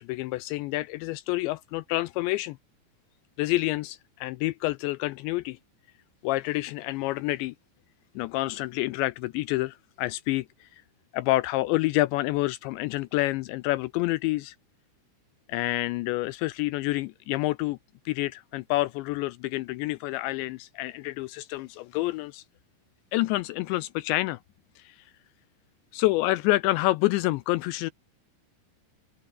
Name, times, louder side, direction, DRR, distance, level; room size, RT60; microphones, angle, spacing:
voice 1, 0.0-2.6 3.4-5.6 6.2-7.5 8.2-10.8 11.1-14.6 15.5-17.8 18.1-22.4 23.1-24.4 24.8-25.0 25.9-27.9, left 19 dB, 85° left, 2.6 m, -28 dB
open air
omnidirectional pair, 5.7 m